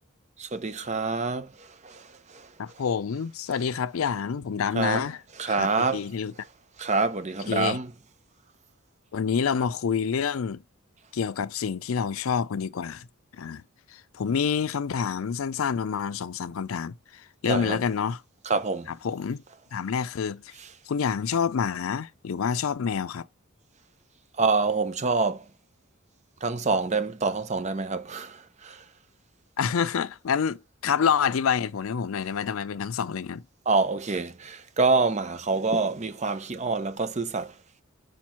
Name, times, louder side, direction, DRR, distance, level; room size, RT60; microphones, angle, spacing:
voice 1, 0.4-2.5 4.7-5.0 5.4-6.1 6.8-7.9 17.4-17.8 18.4-18.9 24.4-25.5 26.4-28.8 33.7-37.5, right 4 dB, 35° right, 0.7 m, -26 dB
voice 2, 2.6-5.2 5.5-6.3 7.5-7.8 9.1-10.6 11.1-13.1 13.3-13.6 13.9-18.2 19.0-19.4 19.7-20.5 20.9-23.3 29.6-33.4, left 6 dB, 80° left, 0.4 m, -27 dB
5.1 x 4.5 x 5.6 m
head